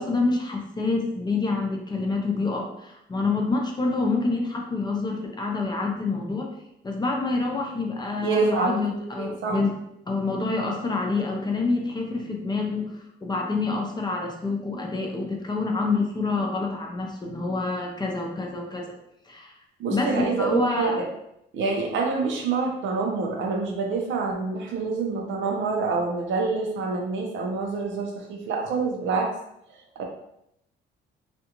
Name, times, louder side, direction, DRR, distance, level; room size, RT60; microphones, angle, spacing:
voice 1, 0.0-6.5 6.8-9.7 10.1-18.9 19.3-19.5 19.9-21.1, left 3 dB, 20° left, 1 dB, 0.5 m, -27 dB
voice 2, 8.2-8.8 9.4-9.6 19.8-21.0 21.5-29.3 30.0-30.1, right 4 dB, 75° right, 1 dB, 0.6 m, -26 dB
2.5 x 2.4 x 2.9 m, 0.79 s
cardioid pair, 90°, 20 cm